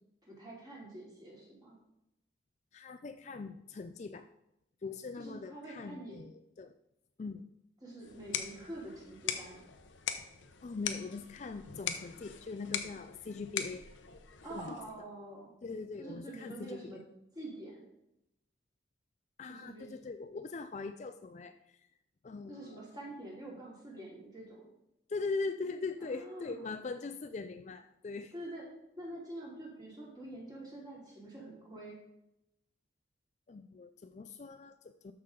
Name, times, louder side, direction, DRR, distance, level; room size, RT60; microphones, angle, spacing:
voice 1, 0.2-1.8 5.2-6.2 7.8-9.6 14.4-15.5 16.0-17.0 17.4-17.9 19.5-19.9 22.5-24.7 26.0-26.7 28.3-28.7 29.0-32.0, right 1 dB, 20° right, -4 dB, 2.8 m, -46 dB
voice 2, 2.7-4.3 4.8-6.7 7.2-7.5 10.6-13.9 14.5-14.7 15.6-17.0 19.4-21.8 22.2-22.8 25.1-28.3 33.5-35.1, left 4 dB, 35° left, 9 dB, 0.3 m, -41 dB
sound 1, 8.0-15.0, left 8 dB, 85° left, 0.8 m, -41 dB
13.0 x 5.6 x 3.7 m, 0.83 s
head